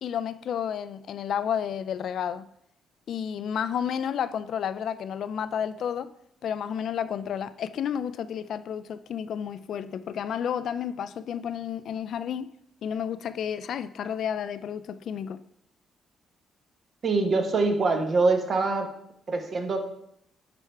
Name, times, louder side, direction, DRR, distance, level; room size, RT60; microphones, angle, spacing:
voice 1, 0.0-2.4 3.1-6.1 6.4-12.5 12.8-15.4, left 8 dB, 65° left, 0.3 m, -31 dB
voice 2, 17.0-18.9 19.3-19.8, right 3 dB, 45° right, 1.0 m, -24 dB
9.1 x 3.5 x 4.4 m
cardioid pair, 90°, 0 cm